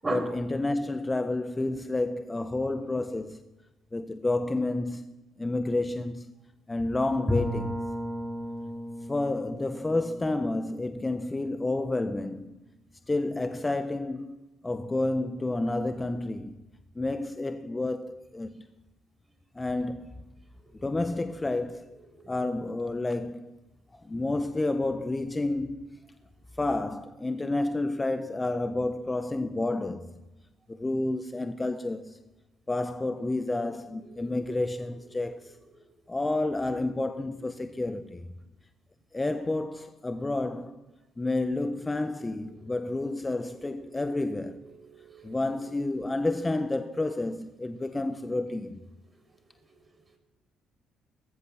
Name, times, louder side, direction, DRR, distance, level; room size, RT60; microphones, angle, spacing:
voice 1, 0.1-3.4 3.9-6.3 6.7-7.8 9.1-12.6 13.1-14.4 14.6-16.6 16.9-18.6 19.5-20.1 20.8-22.0 22.3-23.6 23.9-26.0 26.6-30.2 30.7-32.2 32.7-35.6 36.1-38.3 39.1-40.8 41.2-44.6 45.2-48.8, left 2 dB, 20° left, 1.4 m, -30 dB
Bowed string instrument, 7.3-12.1, equal, ahead, 2.9 m, -35 dB
voice 2, 43.6-44.1 44.8-45.7 45.9-46.3, right 2 dB, 25° right, 7.2 m, -39 dB
23.5 x 19.5 x 6.1 m
hypercardioid pair, 50°, 0 cm